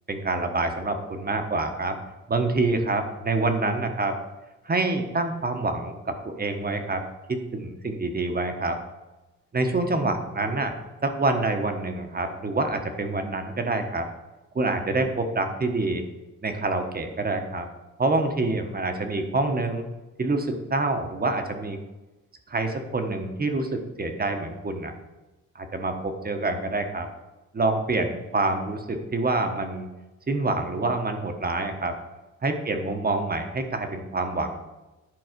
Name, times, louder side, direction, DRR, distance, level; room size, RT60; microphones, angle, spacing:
voice 1, 0.1-2.0 2.3-4.2 4.6-7.0 7.3-8.8 9.5-10.7 11.0-14.1 14.5-16.0 16.4-17.7 18.0-19.8 20.2-21.8 22.5-24.9 25.5-27.1 27.5-29.9 30.3-31.9 32.4-34.6, right 2 dB, 30° right, 6 dB, 1.2 m, -26 dB
11.0 x 5.1 x 5.2 m, 1.1 s
cardioid pair, 115°, 31 cm